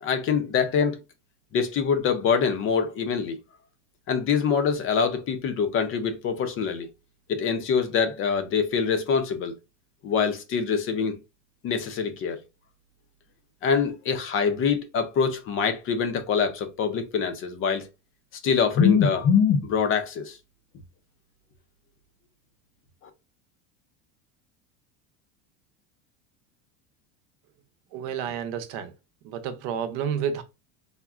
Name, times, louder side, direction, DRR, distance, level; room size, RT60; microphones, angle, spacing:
voice 1, 0.0-1.0 1.5-3.4 4.1-6.9 7.3-9.5 10.0-11.1 11.6-12.4 13.6-17.9 18.4-20.4, left 6 dB, 35° left, 0.5 m, -24 dB
voice 2, 27.9-28.9 29.2-30.4, right 8 dB, 65° right, 0.8 m, -30 dB
3.6 x 2.1 x 2.3 m
cardioid pair, 145°, 37 cm